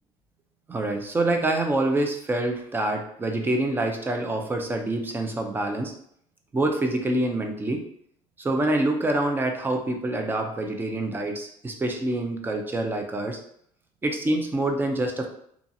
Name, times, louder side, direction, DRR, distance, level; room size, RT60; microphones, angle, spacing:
voice 1, 0.7-5.9 6.5-7.8 8.4-13.4 14.0-15.3, right 2 dB, 15° right, 3 dB, 0.4 m, -26 dB
2.7 x 2.3 x 2.6 m, 0.68 s
cardioid pair, 130°, 13 cm